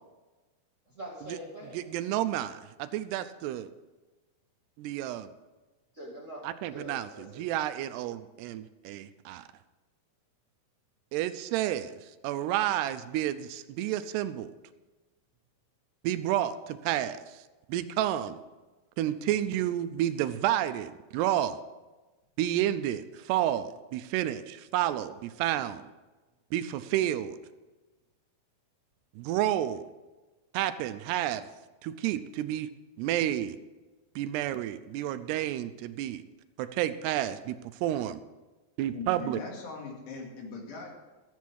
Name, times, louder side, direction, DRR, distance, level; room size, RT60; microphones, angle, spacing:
voice 1, 0.8-1.8 5.9-7.5, equal, 30° right, -4 dB, 1.5 m, -44 dB
voice 2, 1.7-3.7 4.8-5.3 6.4-9.4 11.1-11.9 12.2-14.5 16.0-17.4 17.7-18.4 19.0-21.6 22.4-25.8 26.5-27.4 29.2-29.9 30.5-31.4 31.8-32.7 33.0-33.6 34.2-36.2 36.6-38.2 38.8-39.4, right 12 dB, 80° right, 11 dB, 2.6 m, -30 dB
voice 3, 38.9-40.9, left 3 dB, 80° left, 0 dB, 4.4 m, -40 dB
13.5 x 8.3 x 6.2 m, 1.2 s
omnidirectional pair, 4.9 m